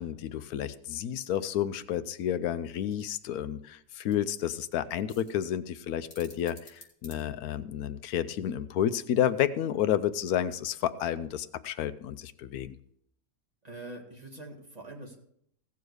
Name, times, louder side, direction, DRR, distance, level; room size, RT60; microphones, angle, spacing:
voice 1, 0.0-12.7, left 10 dB, 85° left, 13 dB, 1.1 m, -30 dB
sound 1, 2.9-7.9, left 2 dB, 65° left, 3.2 m, -56 dB
voice 2, 13.6-15.2, right 2 dB, 25° right, 0 dB, 2.0 m, -44 dB
16.5 x 7.1 x 4.7 m, 0.70 s
omnidirectional pair, 1.6 m